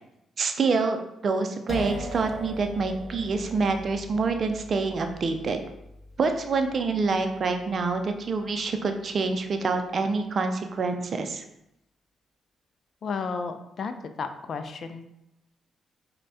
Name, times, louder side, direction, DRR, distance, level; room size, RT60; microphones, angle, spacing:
voice 1, 0.4-5.6 6.2-11.4, right 4 dB, 55° right, 6 dB, 0.4 m, -26 dB
sound 1, 1.7-9.3, equal, 30° left, 0.7 m, -41 dB
voice 2, 13.0-13.9 14.2-15.1, left 5 dB, 60° left, 8 dB, 0.3 m, -32 dB
5.2 x 2.2 x 2.6 m, 0.83 s
hypercardioid pair, 45°, 0 cm